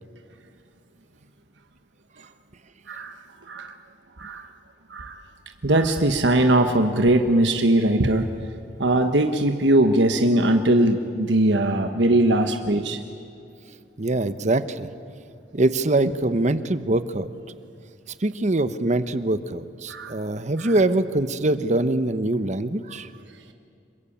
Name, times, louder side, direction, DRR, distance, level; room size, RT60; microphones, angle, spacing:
voice 1, 2.9-3.2 3.5-3.8 4.2-4.5 4.9-5.2 5.6-8.3 8.8-13.0 19.9-20.2 20.6-20.7, right 1 dB, 85° right, 6 dB, 1.3 m, -20 dB
voice 2, 14.0-14.9 15.5-17.3 18.2-23.1, right 2 dB, 40° right, 12 dB, 1.0 m, -23 dB
27.0 x 23.0 x 8.7 m, 2.4 s
head